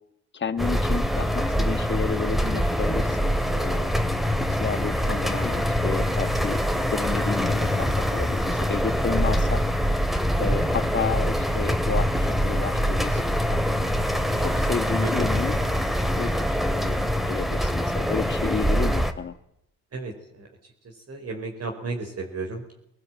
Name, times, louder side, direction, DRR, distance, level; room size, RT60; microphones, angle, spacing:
voice 1, 0.3-3.9 4.5-6.6 6.9-9.6 10.4-13.6 14.4-15.6 16.1-19.4, left 5 dB, 30° left, 8 dB, 1.6 m, -31 dB
sound 1, 0.6-19.1, equal, ahead, 2.7 m, -24 dB
voice 2, 19.9-20.5 21.1-22.7, right 3 dB, 45° right, 2 dB, 5.0 m, -33 dB
20.5 x 19.5 x 9.2 m, 0.77 s
hypercardioid pair, 55°, 34 cm